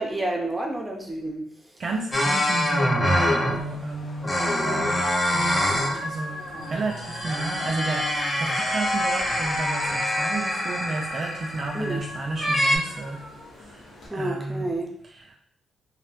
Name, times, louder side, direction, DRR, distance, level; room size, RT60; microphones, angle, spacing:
voice 1, 0.0-1.5 4.5-4.8 11.7-12.0 14.1-14.9, right 1 dB, 10° right, 0 dB, 0.7 m, -29 dB
voice 2, 1.8-14.9 15.1-15.2, right 3 dB, 50° right, 1 dB, 0.3 m, -32 dB
sound 1, 2.1-3.7 4.2-6.0 6.4-11.9 12.4-12.8, left 1 dB, 30° left, 0.7 m, -25 dB
sound 2, 3.5-14.1, left 1 dB, 80° left, 0.9 m, -38 dB
2.7 x 2.1 x 2.7 m, 0.67 s
cardioid pair, 75°, 0 cm